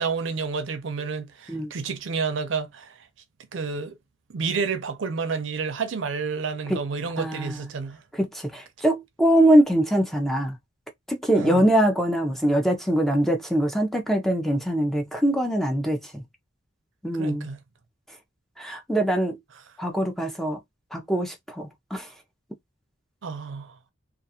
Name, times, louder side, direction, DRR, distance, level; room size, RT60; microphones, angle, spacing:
voice 1, 0.0-3.0 3.5-4.0 4.3-8.0 11.3-11.7 17.1-17.6 23.2-23.7, right 5 dB, 70° right, 0.5 m, -30 dB
voice 2, 7.2-7.6 8.1-10.6 11.1-16.2 17.0-17.5 18.6-19.4 19.8-20.6 20.9-22.1, right 1 dB, ahead, 0.5 m, -23 dB
2.4 x 2.3 x 2.7 m
head